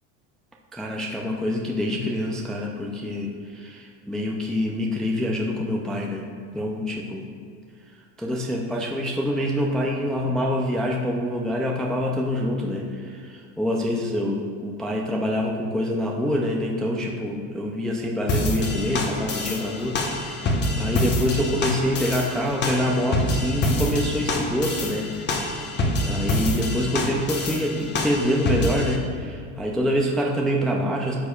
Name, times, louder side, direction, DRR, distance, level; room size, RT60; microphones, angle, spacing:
voice 1, 0.7-6.2 6.5-7.2 8.2-25.5 26.0-31.2, equal, ahead, -1 dB, 0.4 m, -26 dB
sound 1, 18.3-29.0, left 1 dB, 25° left, 0.9 m, -26 dB
11.5 x 6.3 x 2.4 m, 2.1 s
supercardioid pair, 120°, 39 cm